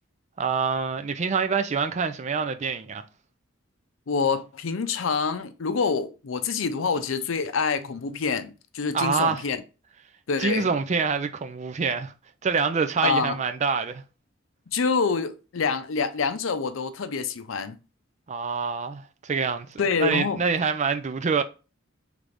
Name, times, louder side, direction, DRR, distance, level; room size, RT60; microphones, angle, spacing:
voice 1, 0.4-3.0 8.9-9.4 10.4-12.1 12.4-14.0 18.3-21.4, right 5 dB, 35° right, 0.4 m, -26 dB
voice 2, 4.1-9.6 10.3-10.7 13.0-13.4 14.7-17.8 19.8-20.4, left 5 dB, 85° left, 0.5 m, -26 dB
4.9 x 3.3 x 2.5 m
head